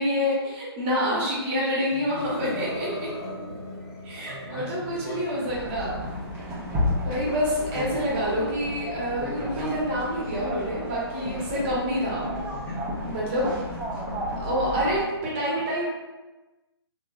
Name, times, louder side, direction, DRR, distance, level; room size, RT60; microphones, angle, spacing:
voice 1, 0.0-2.9 4.0-6.0 7.0-12.3 13.0-13.6 14.4-15.8, equal, 25° right, -5 dB, 0.8 m, -27 dB
voice 2, 1.9-3.1 3.8-6.1 6.5-7.1 12.5-13.1, equal, 40° left, -8 dB, 0.7 m, -42 dB
sound 1, 2.2-8.5, left 1 dB, 85° left, 1.2 m, -40 dB
sound 2, 5.5-15.0, equal, 10° right, 0.3 m, -32 dB
2.9 x 2.5 x 2.3 m, 1.2 s
hypercardioid pair, 150°, 14 cm